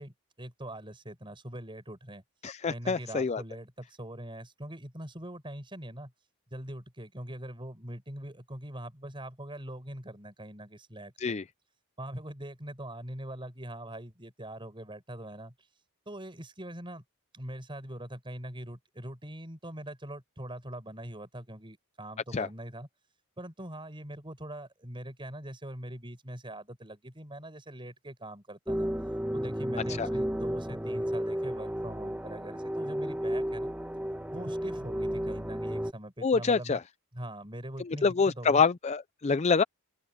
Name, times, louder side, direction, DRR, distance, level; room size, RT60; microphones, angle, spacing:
voice 1, 0.0-2.2 2.7-6.1 6.5-11.4 12.0-15.5 16.1-17.0 17.3-22.9 23.4-28.9 29.3-33.7 34.3-36.8 37.1-38.6, right 1 dB, 20° right, 6.2 m, -42 dB
voice 2, 2.4-3.4 11.2-11.4 22.3-22.5 30.0-30.1 36.2-36.8 37.9-39.6, left 5 dB, 30° left, 0.4 m, -26 dB
sound 1, 28.7-35.9, equal, 5° right, 1.4 m, -33 dB
open air
head